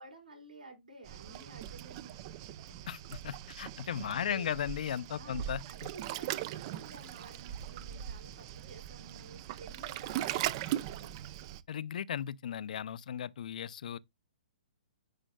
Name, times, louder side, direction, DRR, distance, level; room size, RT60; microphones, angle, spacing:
voice 1, 0.0-2.4 4.1-4.6 5.1-11.1, right 3 dB, 90° right, 5.2 m, -52 dB
Waves surf, 1.0-11.6, right 12 dB, 35° right, 0.5 m, -40 dB
voice 2, 2.9-5.9 11.7-14.0, left 9 dB, 65° left, 0.5 m, -36 dB
10.0 x 5.0 x 2.3 m
hypercardioid pair, 145°, 5 cm